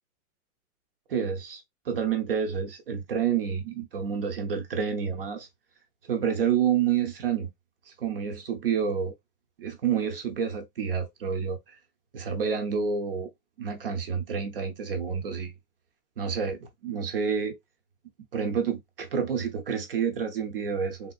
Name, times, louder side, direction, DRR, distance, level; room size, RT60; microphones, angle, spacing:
voice 1, 1.1-5.5 6.0-7.5 7.9-9.1 9.6-11.8 12.1-13.3 13.6-15.5 16.2-17.6 18.3-21.1, right 7 dB, 40° right, 0.5 m, -29 dB
3.4 x 2.5 x 2.3 m
supercardioid pair, 175°, 45 cm